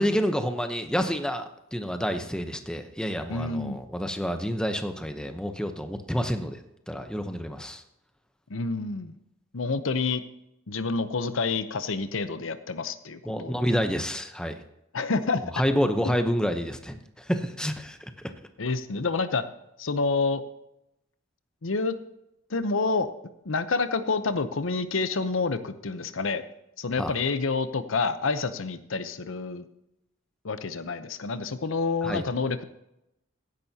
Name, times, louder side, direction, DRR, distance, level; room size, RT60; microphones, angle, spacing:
voice 1, 0.0-6.6 6.9-7.8 13.3-14.5 15.5-18.1 27.0-27.1 32.0-32.2, equal, 5° left, 7 dB, 0.8 m, -28 dB
voice 2, 3.3-3.8 8.5-9.1 9.5-10.2 10.7-13.5 14.9-15.4 18.6-19.4 19.8-20.4 21.6-22.0 22.5-23.1 23.5-26.4 26.8-29.6 30.4-32.6, left 4 dB, 70° left, 11 dB, 0.8 m, -28 dB
16.0 x 10.5 x 2.8 m, 0.84 s
head